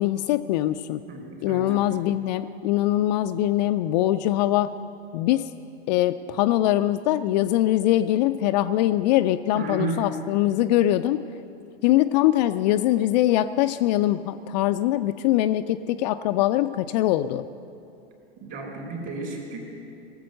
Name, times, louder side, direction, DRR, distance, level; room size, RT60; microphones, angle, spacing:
voice 1, 0.0-1.0 1.4-4.7 5.1-5.5 5.9-11.2 11.8-17.4, left 14 dB, 45° left, 10 dB, 0.4 m, -22 dB
voice 2, 1.1-1.7 9.5-10.1 18.4-19.7, right 3 dB, 40° right, 1 dB, 3.8 m, -32 dB
18.5 x 7.5 x 6.4 m, 2.6 s
figure-of-eight pair, 95°, 32 cm